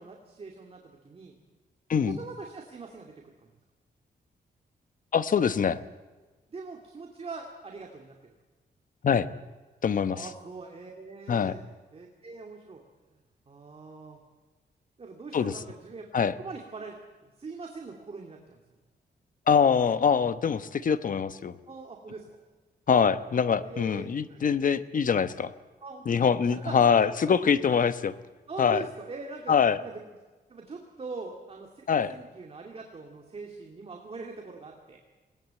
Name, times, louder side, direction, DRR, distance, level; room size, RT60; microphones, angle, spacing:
voice 1, 0.0-1.3 2.0-3.5 6.5-8.2 10.1-11.6 11.9-12.8 13.5-14.2 15.0-16.1 16.4-16.9 17.2-18.6 21.7-22.4 23.6-24.4 25.8-26.2 26.5-27.0 28.5-30.0 30.5-35.0, right 3 dB, 35° right, 2 dB, 2.5 m, -42 dB
voice 2, 5.1-5.8 9.0-9.3 9.8-10.3 11.3-11.5 15.3-15.5 16.1-16.3 19.5-21.5 22.9-25.5 26.1-28.1 28.6-28.8 29.5-29.8 31.9-32.1, left 6 dB, 50° left, 13 dB, 1.1 m, -24 dB
21.5 x 18.5 x 8.9 m, 1.3 s
cardioid pair, 115°, 17 cm